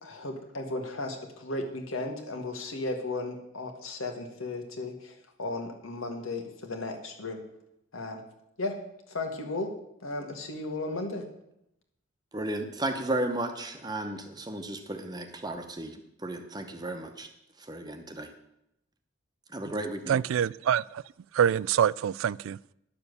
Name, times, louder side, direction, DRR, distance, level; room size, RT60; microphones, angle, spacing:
voice 1, 0.0-7.4 7.9-8.2 8.6-8.7 9.1-9.7 10.0-11.2, left 2 dB, 90° left, 4 dB, 1.9 m, -35 dB
voice 2, 12.3-17.3 17.6-18.3 19.5-20.2, right 1 dB, 20° right, 6 dB, 0.9 m, -34 dB
voice 3, 20.1-21.0 21.3-22.6, right 9 dB, 80° right, 22 dB, 0.3 m, -25 dB
10.5 x 7.1 x 6.7 m, 0.81 s
head